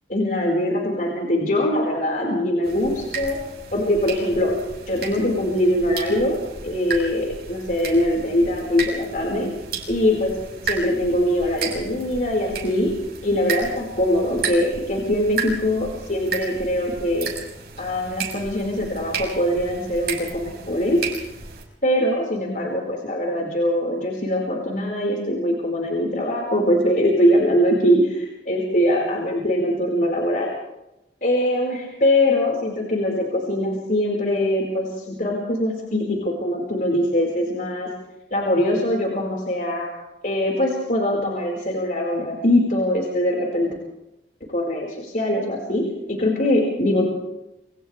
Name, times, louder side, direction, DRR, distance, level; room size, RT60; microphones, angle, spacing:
voice 1, 0.1-3.4 3.7-4.6 4.9-9.5 9.9-10.3 10.6-12.9 13.2-17.3 17.8-21.0 21.8-30.5 31.2-37.9 38.3-39.9 40.2-43.7 44.5-47.1, left 1 dB, 45° left, -1 dB, 5.1 m, -22 dB
sound 1, 2.6-21.6, right 5 dB, 55° right, 6.5 m, -33 dB
28.5 x 26.5 x 3.5 m, 0.89 s
head